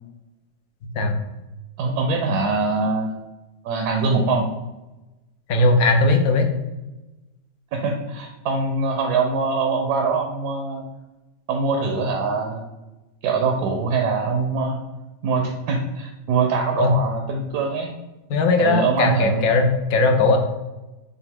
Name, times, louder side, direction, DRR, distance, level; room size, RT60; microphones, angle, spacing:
voice 1, 1.8-3.3 3.6-4.5 7.7-10.8 11.5-12.7 13.2-14.8 15.2-17.9 18.6-19.5, right 4 dB, 80° right, 2 dB, 1.1 m, -23 dB
voice 2, 5.5-6.5 16.8-17.0 18.3-20.4, left 3 dB, 70° left, 4 dB, 1.0 m, -18 dB
5.8 x 2.3 x 3.5 m, 1.1 s
omnidirectional pair, 1.7 m